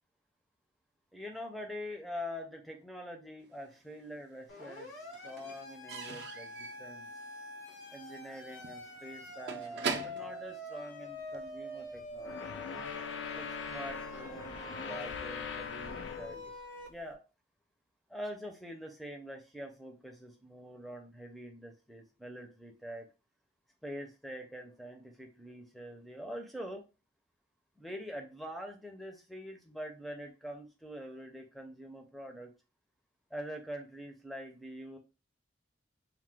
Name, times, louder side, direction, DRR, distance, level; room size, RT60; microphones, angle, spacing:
voice 1, 1.1-4.9 5.2-7.1 7.9-12.6 13.3-16.5 16.9-17.2 18.1-23.1 23.8-26.8 27.8-32.5 33.3-35.0, equal, ahead, 3 dB, 0.5 m, -45 dB
Slam / Squeak / Wood, 3.6-4.5 4.7-11.5, right 5 dB, 60° right, 0.4 m, -42 dB
Siren, 4.5-16.9, left 2 dB, 90° left, 0.9 m, -46 dB
sound 1, 11.9-16.5, left 6 dB, 70° left, 0.4 m, -41 dB
2.8 x 2.0 x 3.4 m, 0.31 s
head